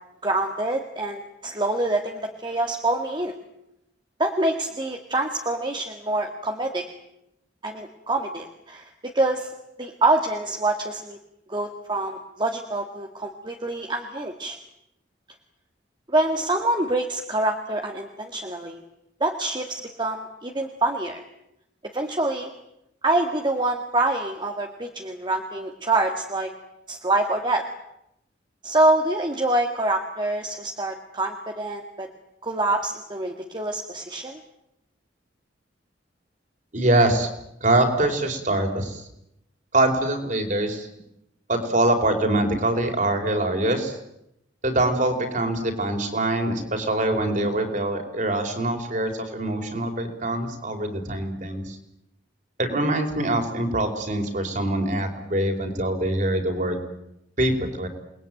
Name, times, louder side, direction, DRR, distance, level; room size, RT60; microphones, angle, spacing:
voice 1, 0.2-3.3 4.2-6.8 7.6-9.5 9.8-11.2 11.5-14.6 16.1-18.8 19.2-21.2 21.9-22.5 23.0-26.5 26.9-27.6 28.6-32.1 32.4-34.4, right 2 dB, 25° right, 3 dB, 2.0 m, -26 dB
voice 2, 36.7-37.3 37.6-39.0 39.7-40.9 41.5-44.0 44.6-51.8 52.6-56.8 57.4-57.9, right 1 dB, 45° right, 4 dB, 5.0 m, -24 dB
28.5 x 21.0 x 9.3 m, 0.83 s
head